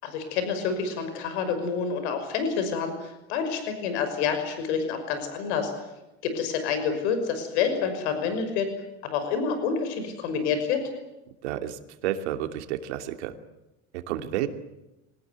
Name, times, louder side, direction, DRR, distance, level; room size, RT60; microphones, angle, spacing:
voice 1, 0.0-5.7 6.2-8.7 9.0-10.8, left 6 dB, 80° left, 8 dB, 5.9 m, -28 dB
voice 2, 11.4-13.3 13.9-14.5, right 12 dB, 90° right, 7 dB, 2.8 m, -31 dB
24.5 x 19.5 x 9.5 m, 0.95 s
supercardioid pair, 135°, 33 cm